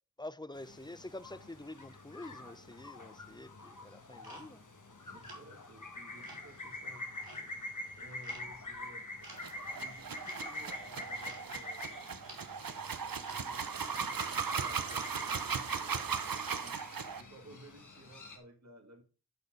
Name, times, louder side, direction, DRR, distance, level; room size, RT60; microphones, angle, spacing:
voice 1, 0.2-4.7, left 1 dB, 10° left, 0.5 m, -47 dB
sound 1, 0.5-18.4, left 2 dB, 55° left, 1.5 m, -46 dB
sound 2, 4.2-4.7 5.2-5.5 6.2-6.5 7.2-7.5 8.2-8.6 9.2-9.6 10.2-10.5 11.2-11.5 12.2-12.5 13.2-13.4 14.2-14.4 15.2-15.4, right 2 dB, 90° right, 2.7 m, -53 dB
voice 2, 5.0-9.3 9.8-11.9 13.3-16.8 17.2-19.0, right 1 dB, 50° right, 1.8 m, -56 dB
sound 3, 9.3-17.2, right 6 dB, 75° right, 0.8 m, -37 dB
10.5 x 4.2 x 5.0 m
wide cardioid pair, 45°, 35 cm